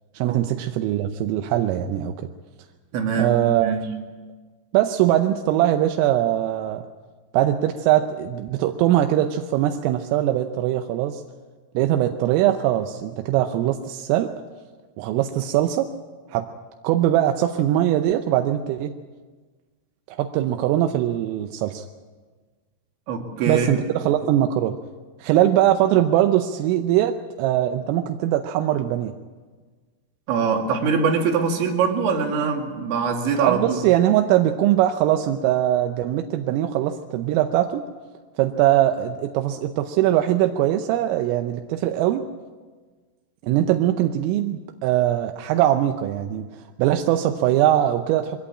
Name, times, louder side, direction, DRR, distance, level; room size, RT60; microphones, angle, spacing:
voice 1, 0.1-2.3 3.2-3.7 4.7-6.8 7.3-11.2 11.7-14.3 15.0-15.9 16.3-16.5 16.8-18.9 20.1-21.9 23.5-24.7 25.2-29.1 33.4-37.8 38.4-42.2 43.4-46.5 46.8-48.4, right 12 dB, 85° right, 6 dB, 3.4 m, -21 dB
voice 2, 2.9-3.9 23.1-23.7 30.3-33.8, right 5 dB, 70° right, 3 dB, 4.3 m, -23 dB
22.5 x 17.0 x 8.6 m, 1.4 s
omnidirectional pair, 5.8 m